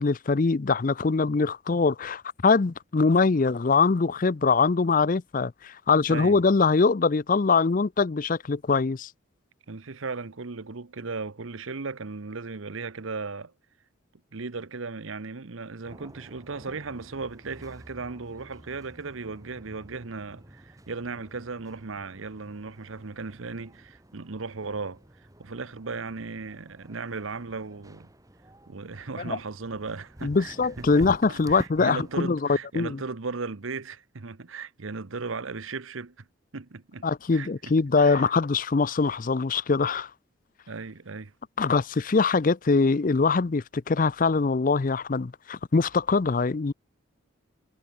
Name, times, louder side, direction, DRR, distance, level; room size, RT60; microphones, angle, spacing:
voice 1, 0.0-9.1 29.3-29.4 30.2-33.0 37.0-40.1 41.6-46.7, left 4 dB, 40° left, 0.5 m, -23 dB
voice 2, 6.1-6.4 9.7-13.5 14.3-28.1 28.7-36.2 36.5-37.0 37.3-38.3 40.7-41.3, right 4 dB, 75° right, 1.0 m, -36 dB
sound 1, 15.8-32.2, right 1 dB, 15° right, 1.4 m, -48 dB
head